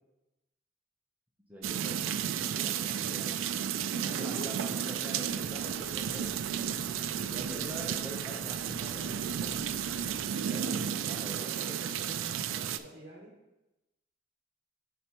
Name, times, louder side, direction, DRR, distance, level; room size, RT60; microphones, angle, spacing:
voice 1, 1.5-3.5 3.9-6.8 7.3-9.8 10.4-11.6, right 1 dB, 10° right, -3 dB, 0.8 m, -45 dB
sound 1, 1.6-12.8, right 8 dB, 90° right, 0.3 m, -33 dB
voice 2, 4.1-4.6 10.5-10.7 11.3-13.3, right 1 dB, 30° right, -3 dB, 1.2 m, -48 dB
sound 2, 5.3-10.3, left 2 dB, 85° left, 0.6 m, -51 dB
10.0 x 4.2 x 3.0 m, 0.99 s
head